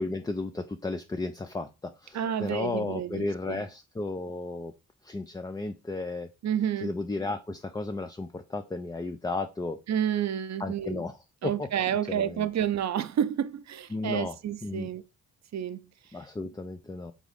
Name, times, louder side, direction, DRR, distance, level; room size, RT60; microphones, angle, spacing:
voice 1, 0.0-4.7 5.0-6.3 6.8-9.8 10.6-11.2 11.4-12.5 13.9-14.3 14.6-14.9 16.1-17.1, left 2 dB, 10° left, 0.3 m, -34 dB
voice 2, 2.1-3.6 6.4-6.9 9.9-11.0 11.4-15.0 15.5-15.8, right 9 dB, 50° right, 0.6 m, -30 dB
3.8 x 3.7 x 3.3 m
cardioid pair, 60°, 35 cm